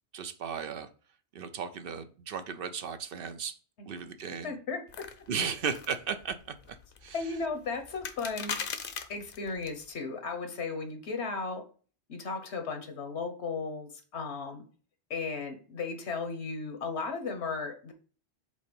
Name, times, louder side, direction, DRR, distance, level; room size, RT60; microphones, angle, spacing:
voice 1, 0.1-0.9 1.3-3.6 3.8-4.5 5.3-7.4, right 6 dB, 65° right, 10 dB, 0.7 m, -36 dB
voice 2, 4.4-4.8 7.1-8.6 9.1-11.6 12.1-14.6 15.1-17.9, left 4 dB, 85° left, 6 dB, 1.3 m, -35 dB
sound 1, 4.9-9.9, left 6 dB, 60° left, 0.8 m, -41 dB
5.2 x 3.8 x 5.2 m, 0.40 s
omnidirectional pair, 1.1 m